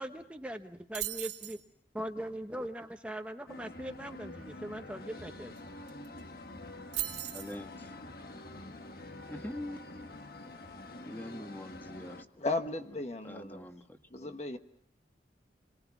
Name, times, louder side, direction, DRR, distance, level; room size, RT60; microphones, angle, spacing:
voice 1, 0.0-1.6 1.9-5.5, right 1 dB, 5° right, 1.0 m, -40 dB
sound 1, 0.9-1.6 5.6-5.7 5.9-6.2 6.9-7.6, right 14 dB, 85° right, 2.6 m, -37 dB
sound 2, 3.5-12.2, left 2 dB, 55° left, 1.5 m, -47 dB
voice 2, 7.3-7.7 9.3-10.1 10.4-10.5 11.0-12.2 13.2-14.3, left 1 dB, 10° left, 1.5 m, -44 dB
voice 3, 12.4-13.7 14.1-14.6, left 2 dB, 40° left, 1.4 m, -35 dB
29.0 x 22.5 x 6.0 m
head